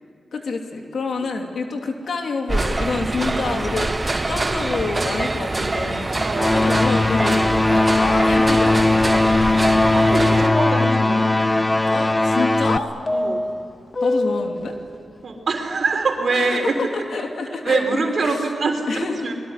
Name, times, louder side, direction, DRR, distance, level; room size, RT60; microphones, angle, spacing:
voice 1, 0.3-6.2 6.5-7.6 7.9-8.8 11.1-11.3 11.8-12.9 14.0-14.8 16.3-18.4 18.9-19.3, left 4 dB, 75° left, 3 dB, 2.9 m, -27 dB
sound 1, 2.5-10.5, right 2 dB, 30° right, 1.1 m, -24 dB
voice 2, 6.2-6.8 9.9-11.3 13.1-13.5 15.2-16.8 17.6-19.3, right 4 dB, 65° right, 3 dB, 3.9 m, -24 dB
sound 2, 6.3-12.8, left 2 dB, 20° left, 0.8 m, -18 dB
sound 3, 10.0-10.9 13.1-14.7, left 2 dB, 35° left, 1.8 m, -26 dB
23.0 x 22.5 x 9.7 m, 2.6 s
cardioid pair, 70°, 0 cm